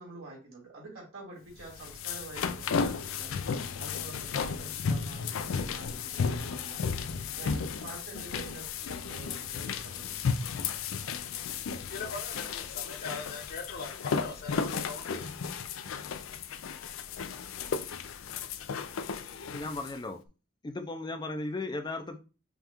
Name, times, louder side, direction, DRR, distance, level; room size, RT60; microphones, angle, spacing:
voice 1, 0.0-6.8 7.1-10.1, right 2 dB, 85° right, 2.1 m, -48 dB
sound 1, 1.6-20.0, left 5 dB, 80° left, 0.4 m, -34 dB
voice 2, 11.8-15.3, left 4 dB, 55° left, 0.9 m, -41 dB
voice 3, 19.5-20.2 20.6-22.2, left 2 dB, 20° left, 0.4 m, -36 dB
5.4 x 2.4 x 2.9 m
head